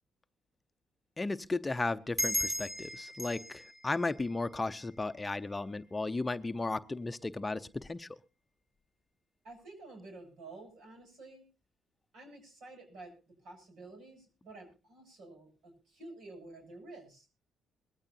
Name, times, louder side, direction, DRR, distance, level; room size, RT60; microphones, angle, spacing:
voice 1, 1.2-8.1, left 3 dB, 20° left, 0.7 m, -35 dB
sound 1, 2.2-5.3, equal, 10° right, 2.7 m, -37 dB
voice 2, 9.4-11.4 12.1-17.3, right 2 dB, 75° right, 8.0 m, -51 dB
21.5 x 15.0 x 2.7 m
cardioid pair, 90°, 0 cm